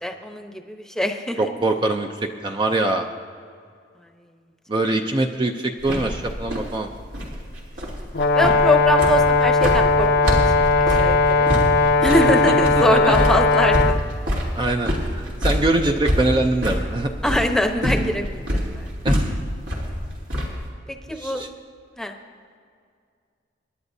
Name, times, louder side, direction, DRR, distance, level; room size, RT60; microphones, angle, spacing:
voice 1, 0.0-1.5 8.3-10.4 10.7-11.5 12.0-14.0 17.2-18.9 20.9-21.5 22.0-22.2, left 1 dB, 5° left, 4 dB, 0.9 m, -23 dB
voice 2, 1.4-3.1 4.7-6.9 12.2-12.3 12.6-13.1 14.6-17.1 19.0-19.3 21.2-21.5, right 2 dB, 25° right, 3 dB, 0.6 m, -23 dB
sound 1, 5.8-20.7, equal, 80° right, 3.1 m, -26 dB
Brass instrument, 8.1-14.0, left 3 dB, 60° left, 0.6 m, -18 dB
27.0 x 11.0 x 2.7 m, 2.2 s
head